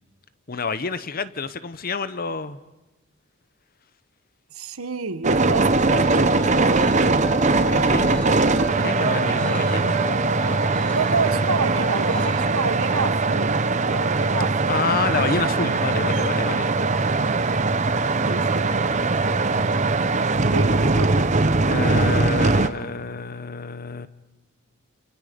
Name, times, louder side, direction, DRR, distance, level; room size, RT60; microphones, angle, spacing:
voice 1, 0.5-2.6 7.5-8.3 8.8-10.0 14.7-16.7 21.7-24.1, left 4 dB, 45° left, 0.9 m, -28 dB
voice 2, 4.5-7.3 10.9-13.6 13.9-14.8 18.3-18.7 20.4-21.3, right 4 dB, 80° right, 1.1 m, -29 dB
sound 1, 5.2-22.7, right 3 dB, 35° right, 0.8 m, -21 dB
sound 2, 5.8-12.5, left 1 dB, 5° left, 3.6 m, -35 dB
29.5 x 26.5 x 5.2 m
head